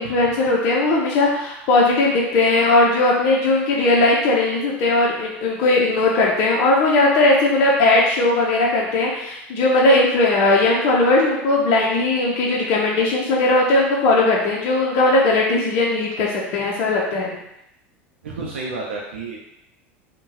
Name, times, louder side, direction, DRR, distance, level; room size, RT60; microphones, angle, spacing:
voice 1, 0.0-17.3, left 2 dB, 60° left, -3 dB, 0.6 m, -18 dB
voice 2, 18.2-19.6, right 3 dB, 90° right, -2 dB, 0.5 m, -31 dB
2.6 x 2.2 x 3.8 m, 0.82 s
hypercardioid pair, 95°, 6 cm